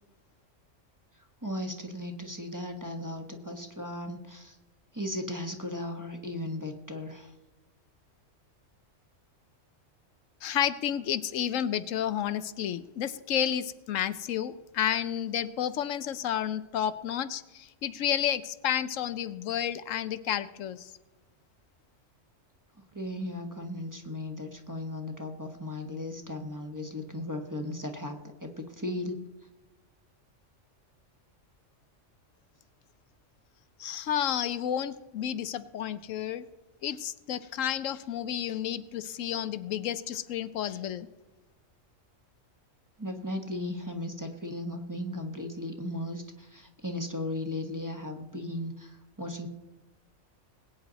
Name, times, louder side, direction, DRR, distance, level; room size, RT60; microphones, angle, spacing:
voice 1, 1.4-4.6 4.9-7.3 22.9-29.2 43.0-49.5, left 1 dB, 15° right, 4 dB, 1.4 m, -36 dB
voice 2, 10.4-17.4 17.8-20.8 33.8-36.4 36.8-41.1, left 10 dB, 80° left, 14 dB, 1.0 m, -31 dB
21.0 x 9.3 x 4.1 m, 1.1 s
omnidirectional pair, 1.3 m